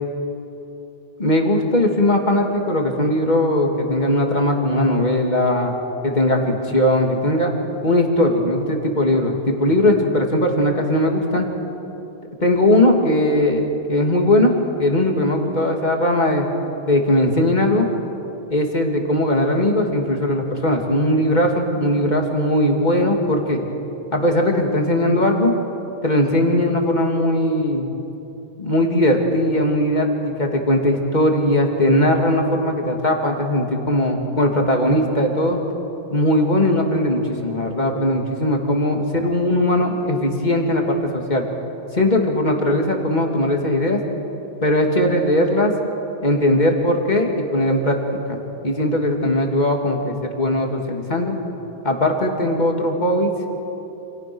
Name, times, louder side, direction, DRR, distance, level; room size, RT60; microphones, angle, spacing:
voice 1, 1.2-5.7 6.0-7.5 7.8-11.5 12.4-14.5 14.8-16.5 16.9-17.9 18.5-23.6 24.1-25.5 26.0-27.9 28.6-30.1 30.4-35.6 36.1-41.4 41.9-44.0 44.6-45.7 46.2-48.0 48.3-48.4 48.6-51.4 51.8-53.3, left 1 dB, 45° left, 2 dB, 3.0 m, -19 dB
29.0 x 28.5 x 6.4 m, 3.0 s
omnidirectional pair, 1.0 m